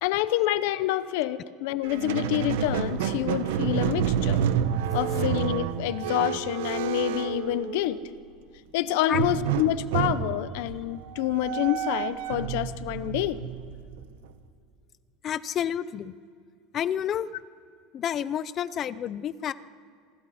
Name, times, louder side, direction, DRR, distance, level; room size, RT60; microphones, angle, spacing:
voice 1, 0.0-4.4 4.9-8.0 8.7-13.4, left 13 dB, 60° left, 15 dB, 0.8 m, -27 dB
Squeak, 1.8-8.2 9.1-14.3, right 9 dB, 90° right, 1.1 m, -29 dB
voice 2, 15.2-16.2 16.7-17.3 17.9-19.5, left 9 dB, 25° left, 17 dB, 0.5 m, -29 dB
26.5 x 24.0 x 4.3 m, 2.3 s
cardioid pair, 175°, 0 cm